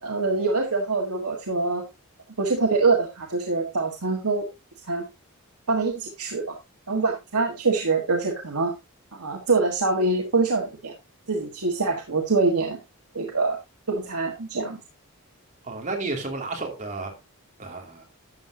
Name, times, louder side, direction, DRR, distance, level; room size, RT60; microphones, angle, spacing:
voice 1, 0.0-1.8 2.4-4.5 4.9-5.0 5.7-6.6 6.9-8.7 9.1-10.9 11.3-12.8 13.1-13.6 13.9-14.8, right 3 dB, 85° right, 1 dB, 1.6 m, -24 dB
voice 2, 15.6-17.1 17.6-18.0, right 3 dB, 35° right, 1 dB, 2.6 m, -32 dB
12.5 x 7.5 x 2.7 m, 0.24 s
head